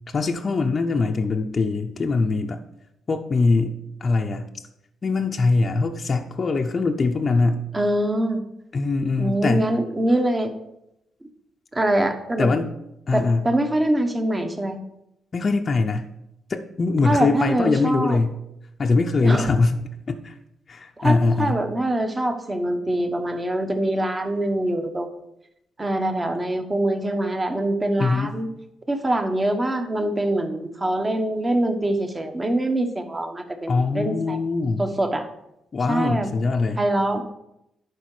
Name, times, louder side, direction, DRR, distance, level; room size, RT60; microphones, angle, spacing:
voice 1, 0.1-2.6 3.1-4.5 5.0-7.7 8.7-9.7 12.4-12.7 13.1-13.5 15.3-16.0 16.5-18.3 18.8-20.3 20.7-21.6 28.0-28.3 33.7-34.9 35.7-36.8, left 3 dB, 40° left, 3 dB, 0.6 m, -22 dB
voice 2, 7.7-8.4 9.2-10.5 11.7-12.5 13.1-14.8 17.0-18.2 19.2-19.5 21.0-25.2 25.8-28.5 28.9-34.4 34.8-35.3 35.9-36.3 36.8-37.2, right 1 dB, 20° right, 6 dB, 1.1 m, -24 dB
11.0 x 4.6 x 4.8 m, 0.84 s
cardioid pair, 100°, 0 cm